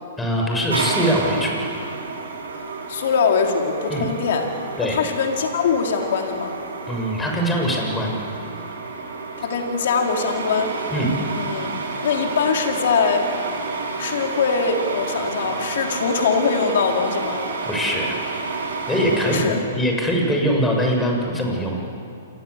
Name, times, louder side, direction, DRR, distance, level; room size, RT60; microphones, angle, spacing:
voice 1, 0.2-1.7 3.9-4.1 4.8-5.0 6.9-8.1 10.9-11.2 17.6-18.2 18.9-21.9, equal, 10° left, 0 dB, 7.0 m, -22 dB
sound 1, 0.7-19.4, right 4 dB, 80° right, 6.1 m, -30 dB
voice 2, 2.9-6.5 9.4-10.7 11.3-11.7 12.0-13.3 14.0-17.4 19.2-19.6, left 5 dB, 60° left, 2 dB, 4.1 m, -22 dB
28.0 x 23.0 x 8.4 m, 2.6 s
hypercardioid pair, 120°, 0 cm